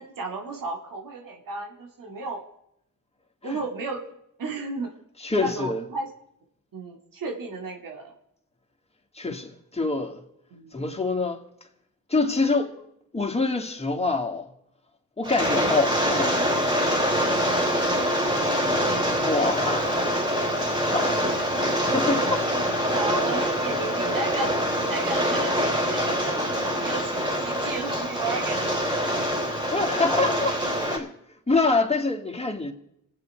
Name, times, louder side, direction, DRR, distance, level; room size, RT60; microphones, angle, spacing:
voice 1, 0.0-2.4 3.4-4.0 4.4-4.9 5.4-6.1 6.7-8.1 10.5-10.8 17.5-17.7 22.9-29.0, right 3 dB, 80° right, 2.2 m, -34 dB
voice 2, 5.2-5.8 9.1-10.2 10.7-11.5 12.1-12.8 13.1-14.5 15.2-16.7 19.2-20.2 20.9-21.4 21.8-22.5 29.7-31.1 31.5-32.7, left 3 dB, 20° left, 2.4 m, -26 dB
Rain, 15.2-31.0, equal, 15° right, 3.6 m, -25 dB
26.0 x 9.1 x 4.7 m
cardioid pair, 55°, 32 cm